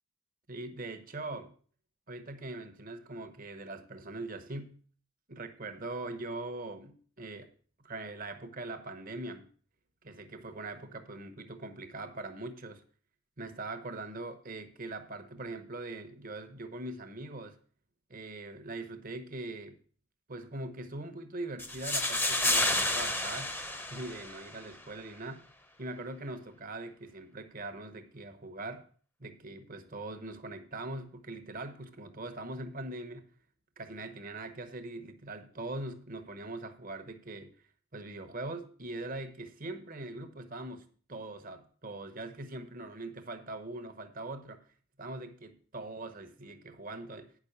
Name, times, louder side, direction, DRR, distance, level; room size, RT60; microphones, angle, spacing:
voice 1, 0.5-1.5 2.1-4.8 5.3-7.5 7.8-9.5 10.0-12.8 13.4-17.6 18.1-19.8 20.3-23.6 23.9-25.4 25.8-28.8 29.2-33.3 33.8-37.5 37.9-44.6 45.0-47.3, right 2 dB, 40° right, 1.1 m, -42 dB
sound 1, 21.6-24.6, left 1 dB, 10° left, 0.9 m, -30 dB
9.4 x 6.1 x 6.7 m
head